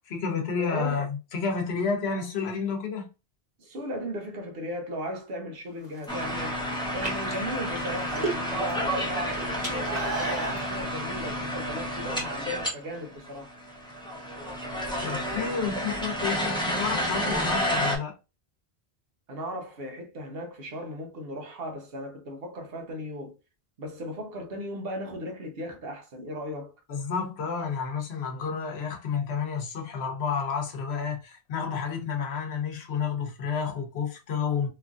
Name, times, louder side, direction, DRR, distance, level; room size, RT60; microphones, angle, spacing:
voice 1, 0.1-3.1 15.0-18.2 26.9-34.7, left 6 dB, 80° left, 1.0 m, -30 dB
voice 2, 0.6-1.0 3.6-6.6 6.9-13.5 19.3-23.4 23.8-26.7, equal, 70° right, 0.9 m, -36 dB
sound 1, 5.8-6.3 6.9-8.7 9.0-10.7, right 3 dB, 45° right, 1.0 m, -32 dB
sound 2, 6.1-12.7 12.9-13.0 13.2-18.0, equal, 5° left, 0.6 m, -30 dB
3.0 x 2.4 x 2.4 m
omnidirectional pair, 1.1 m